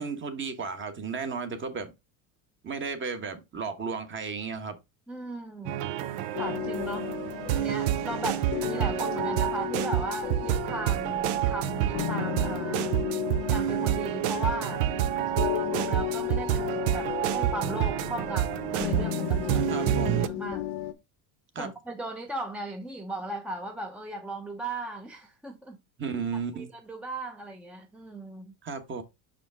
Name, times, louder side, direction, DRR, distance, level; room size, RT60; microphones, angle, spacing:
voice 1, 0.0-1.9 2.6-4.8 19.7-20.2 21.5-21.7 26.0-26.7 28.6-29.0, right 5 dB, 25° right, 1.2 m, -34 dB
voice 2, 5.1-5.8 6.4-7.1 7.6-13.0 13.5-14.8 15.3-20.7 21.6-25.8 26.5-28.5, right 1 dB, 5° right, 0.6 m, -37 dB
sound 1, 5.7-20.3, right 12 dB, 75° right, 0.8 m, -28 dB
sound 2, 6.3-20.9, left 12 dB, 75° left, 1.0 m, -34 dB
5.8 x 5.1 x 3.4 m
cardioid pair, 135°, 43 cm